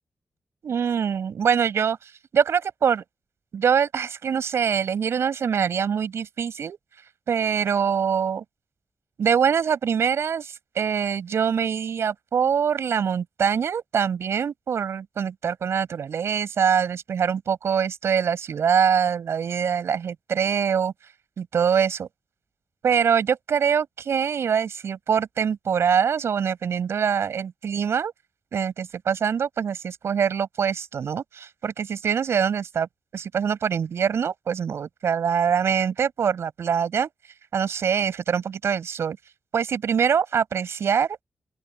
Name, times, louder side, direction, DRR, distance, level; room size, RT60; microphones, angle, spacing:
voice 1, 0.6-2.0 2.3-3.0 3.5-6.8 7.3-8.4 9.2-20.9 21.4-22.1 22.8-28.1 28.5-32.9 33.1-37.1 37.5-39.2 39.5-41.2, right 7 dB, 80° right, 7.8 m, -24 dB
open air
cardioid pair, 70°, 4 cm